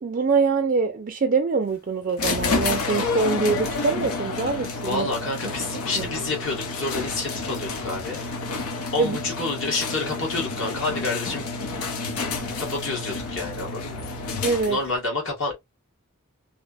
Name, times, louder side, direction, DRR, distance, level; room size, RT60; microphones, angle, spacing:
voice 1, 0.0-5.1 6.0-6.1 9.0-9.2 14.4-14.8, right 4 dB, 40° right, 0.4 m, -24 dB
sound 1, 2.2-15.0, left 3 dB, 90° left, 0.7 m, -29 dB
voice 2, 4.8-8.2 8.9-11.4 12.6-14.1 14.7-15.6, left 3 dB, 60° left, 1.4 m, -29 dB
3.0 x 2.0 x 2.3 m
head